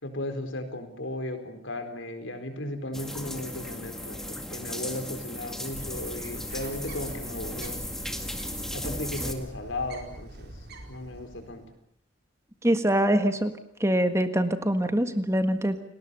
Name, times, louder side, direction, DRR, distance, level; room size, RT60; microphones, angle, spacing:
voice 1, 0.0-7.8 8.7-10.5 10.9-11.6, left 1 dB, 80° left, 8 dB, 4.4 m, -36 dB
sound 1, 2.9-9.3, left 1 dB, ahead, 2.1 m, -36 dB
Bird, 5.8-11.7, right 1 dB, 55° right, 4.6 m, -43 dB
voice 2, 12.6-13.5 13.8-15.8, right 1 dB, 15° right, 8 dB, 1.6 m, -24 dB
30.0 x 20.0 x 6.9 m, 0.71 s
head